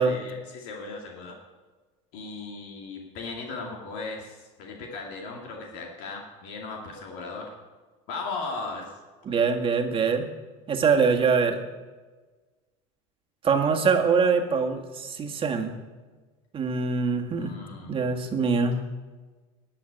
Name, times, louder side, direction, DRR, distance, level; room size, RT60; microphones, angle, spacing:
voice 1, 0.0-1.3 2.1-7.5 8.1-8.9 17.3-18.2, left 3 dB, 65° left, 0 dB, 2.3 m, -37 dB
voice 2, 9.3-10.3 10.7-11.6 13.4-15.7 16.5-17.5 17.9-18.8, right 5 dB, 30° right, 4 dB, 1.8 m, -23 dB
11.5 x 7.7 x 9.4 m, 1.3 s
supercardioid pair, 105°, 16 cm